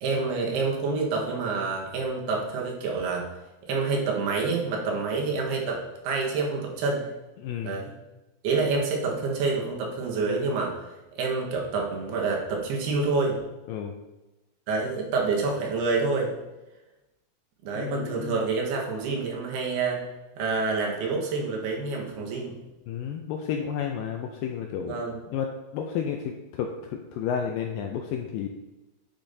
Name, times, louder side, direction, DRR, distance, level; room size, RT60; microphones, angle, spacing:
voice 1, 0.0-3.3 3.7-7.1 7.6-7.9 8.4-10.8 11.2-13.4 14.7-16.3 17.6-20.0 20.4-22.6 24.9-25.2, right 4 dB, 85° right, -1 dB, 3.3 m, -27 dB
voice 2, 7.4-7.8 13.7-14.0 17.8-18.4 22.9-25.0 25.3-28.5, left 8 dB, 85° left, 3 dB, 2.0 m, -32 dB
9.8 x 7.1 x 2.7 m, 1.0 s
omnidirectional pair, 4.6 m